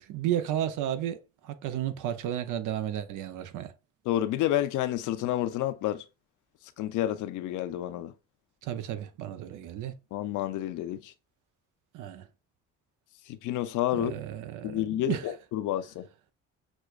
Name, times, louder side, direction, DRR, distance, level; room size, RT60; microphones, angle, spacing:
voice 1, 0.0-3.7 8.6-9.9 11.9-12.3 13.9-15.3, right 11 dB, 85° right, 0.6 m, -33 dB
voice 2, 4.1-6.0 6.8-8.1 10.1-11.1 13.3-14.2 14.6-16.1, left 13 dB, 85° left, 0.5 m, -29 dB
6.1 x 2.2 x 2.3 m
cardioid pair, 90°, 30 cm